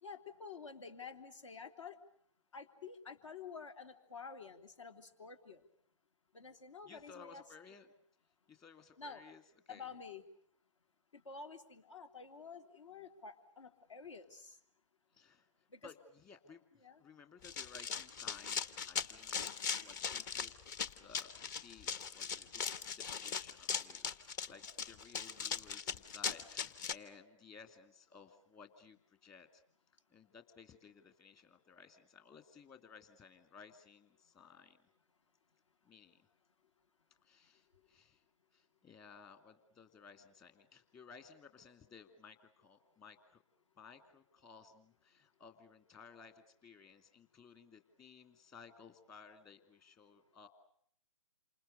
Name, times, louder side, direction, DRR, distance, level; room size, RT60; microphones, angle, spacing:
voice 1, 0.0-2.0 2.5-5.6 6.3-7.4 9.0-9.2 9.7-10.2 11.1-14.6 15.7-15.9 16.8-17.0, left 5 dB, 65° left, 8 dB, 3.2 m, -50 dB
voice 2, 6.9-7.9 8.5-9.9 15.1-15.5 15.8-20.5 21.0-29.6 30.1-34.9 35.8-36.3 37.2-38.2 38.5-43.4 43.8-50.5, left 5 dB, 20° left, 7 dB, 2.2 m, -58 dB
Run, 17.4-26.9, left 6 dB, 35° left, 1.3 m, -39 dB
28.5 x 27.0 x 6.6 m, 0.65 s
figure-of-eight pair, 135°, 17 cm